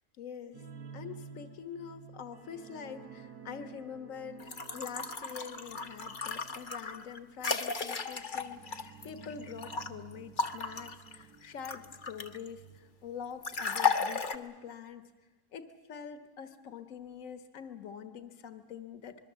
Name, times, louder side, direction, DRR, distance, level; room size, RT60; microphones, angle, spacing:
voice 1, 0.2-0.6 0.9-15.1 15.5-19.2, left 7 dB, 55° left, 10 dB, 1.6 m, -45 dB
sound 1, 0.5-13.8 14.1-14.3 14.7-14.8, right 6 dB, 80° right, 1.9 m, -52 dB
sound 2, 4.4-9.9 10.4-12.5 13.4-14.4, left 5 dB, 35° left, 1.0 m, -34 dB
25.5 x 21.5 x 7.5 m, 1.3 s
omnidirectional pair, 1.7 m